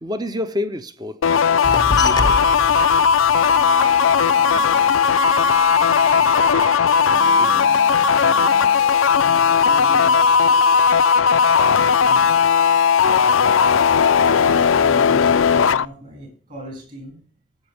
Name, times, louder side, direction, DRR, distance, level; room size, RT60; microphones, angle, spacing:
voice 1, 0.0-1.3 2.0-2.4 7.4-7.7, left 1 dB, 20° right, 0.7 m, -28 dB
sound 1, 1.2-15.8, left 6 dB, 90° left, 0.5 m, -16 dB
sound 2, 1.6-6.6 6.9-8.3 8.5-9.4 9.7-11.1 11.5-12.2, left 2 dB, 20° left, 0.5 m, -30 dB
sound 3, 1.7-11.5 11.8-11.9, right 5 dB, 85° right, 1.0 m, -31 dB
voice 2, 4.3-6.7 7.0-8.4 9.1-10.6 11.7-12.4 14.8-17.2, equal, 40° right, 6.9 m, -39 dB
18.5 x 8.0 x 3.5 m
head